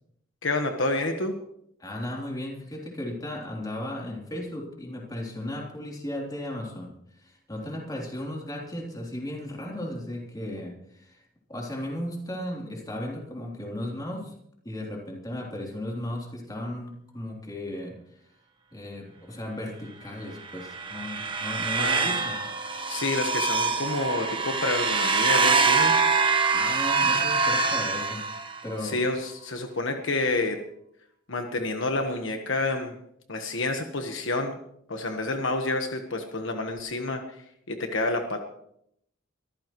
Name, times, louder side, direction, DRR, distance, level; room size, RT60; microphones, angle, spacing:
voice 1, 0.4-1.3 21.8-22.2 22.9-25.9 28.8-30.6 31.3-32.9 33.3-34.6 34.9-38.4, left 2 dB, 65° left, 5 dB, 1.3 m, -29 dB
voice 2, 1.8-11.2 11.5-14.3 14.6-17.9 18.7-22.4 26.5-28.2 28.6-29.0, left 1 dB, 20° left, -1 dB, 3.3 m, -35 dB
sound 1, 20.5-28.8, right 4 dB, 25° right, 1.1 m, -25 dB
23.5 x 14.5 x 3.1 m, 0.72 s
head